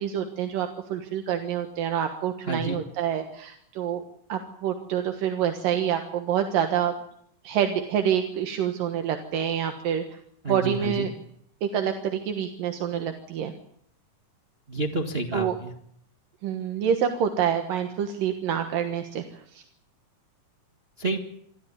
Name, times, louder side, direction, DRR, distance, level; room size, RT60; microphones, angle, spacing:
voice 1, 0.0-4.0 4.3-6.9 7.4-10.0 10.5-11.1 11.6-13.5 15.3-15.5 16.4-19.2 19.5-19.6, right 9 dB, 80° right, 6 dB, 3.1 m, -27 dB
voice 2, 2.4-2.8 10.4-11.1 14.7-15.7 21.0-21.2, right 2 dB, 30° right, 3 dB, 1.2 m, -29 dB
26.0 x 13.0 x 9.8 m, 0.69 s
omnidirectional pair, 3.9 m